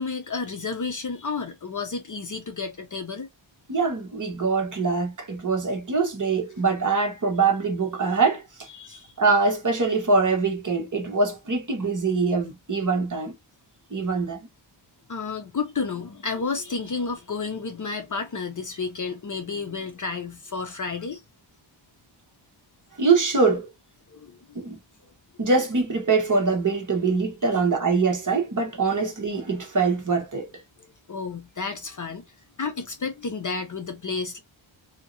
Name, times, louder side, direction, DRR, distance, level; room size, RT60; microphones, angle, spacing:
voice 1, 0.0-3.3 8.7-9.1 15.1-21.2 24.1-24.4 27.5-27.6 28.5-28.6 28.9-29.0 30.8-32.3 32.6-34.4, left 4 dB, 40° left, 0.6 m, -31 dB
voice 2, 3.7-8.4 9.2-13.3 13.9-14.5 23.0-23.7 24.6-24.8 25.4-30.4, right 4 dB, 40° right, 1.1 m, -23 dB
2.9 x 2.7 x 2.5 m
wide cardioid pair, 160°, 48 cm